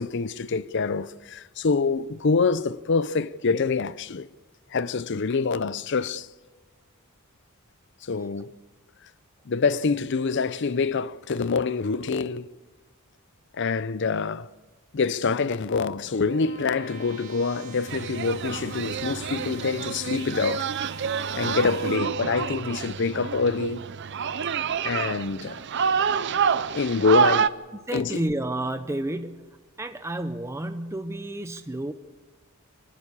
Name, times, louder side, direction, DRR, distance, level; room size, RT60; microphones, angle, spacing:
voice 1, 0.0-4.3 4.7-6.3 8.0-8.6 9.5-12.5 13.5-14.5 14.9-20.7 21.3-23.8 24.8-25.6 26.7-27.5 27.9-28.2, left 4 dB, 55° left, 0.6 m, -26 dB
sound 1, 15.5-22.0, right 3 dB, 40° right, 4.4 m, -45 dB
sound 2, 17.9-27.5, right 7 dB, 55° right, 0.6 m, -28 dB
voice 2, 27.9-29.4 29.8-31.9, right 1 dB, 15° right, 0.6 m, -31 dB
26.5 x 12.0 x 8.4 m
head